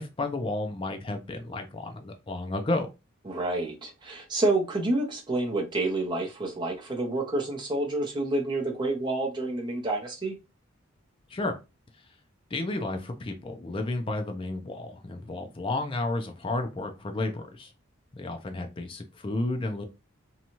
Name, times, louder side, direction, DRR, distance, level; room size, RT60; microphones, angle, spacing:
voice 1, 0.0-2.9 11.3-11.5 12.5-17.7 18.1-19.8, left 2 dB, 25° left, 0.4 m, -32 dB
voice 2, 3.3-10.4, right 2 dB, 25° right, 0.7 m, -28 dB
2.7 x 2.3 x 2.9 m
head